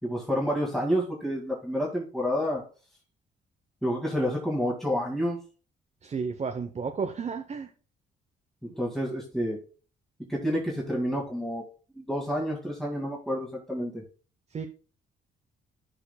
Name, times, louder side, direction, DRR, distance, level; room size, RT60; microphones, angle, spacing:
voice 1, 0.0-2.6 3.8-5.4 8.7-9.6 10.3-11.6 12.0-14.0, equal, ahead, -4 dB, 2.1 m, -29 dB
voice 2, 6.0-7.7 14.5-14.7, right 5 dB, 35° right, 6 dB, 0.8 m, -32 dB
14.5 x 5.0 x 2.3 m, 0.39 s
cardioid pair, 90°, 20 cm